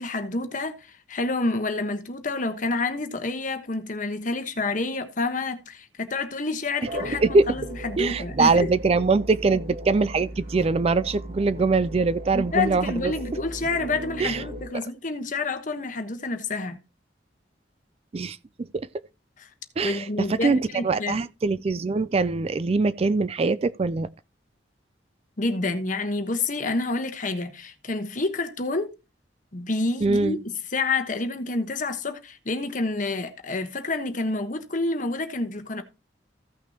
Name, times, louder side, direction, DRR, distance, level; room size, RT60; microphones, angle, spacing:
voice 1, 0.0-8.7 12.3-16.8 19.4-19.5 19.8-21.2 25.4-28.9 29.5-30.4 30.7-35.8, left 3 dB, 45° left, 1.2 m, -28 dB
sound 1, 6.8-14.7, right 1 dB, 55° right, 2.1 m, -37 dB
voice 2, 8.0-13.1 14.2-14.4 18.1-18.9 19.8-24.1 30.0-30.4, right 3 dB, 35° right, 0.4 m, -23 dB
15.5 x 6.0 x 2.9 m
head